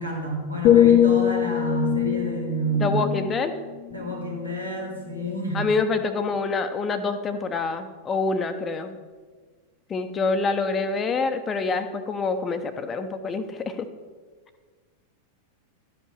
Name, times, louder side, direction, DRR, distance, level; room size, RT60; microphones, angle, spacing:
voice 1, 0.0-3.1 3.9-5.6, right 2 dB, 90° right, -3 dB, 2.9 m, -29 dB
sound 1, 0.6-4.5 5.0-5.3, left 10 dB, 40° left, 0.5 m, -22 dB
voice 2, 2.7-3.6 5.5-8.9 9.9-13.9, left 4 dB, 20° left, 9 dB, 0.9 m, -26 dB
12.5 x 5.5 x 7.3 m, 1.4 s
figure-of-eight pair, 90°, 0 cm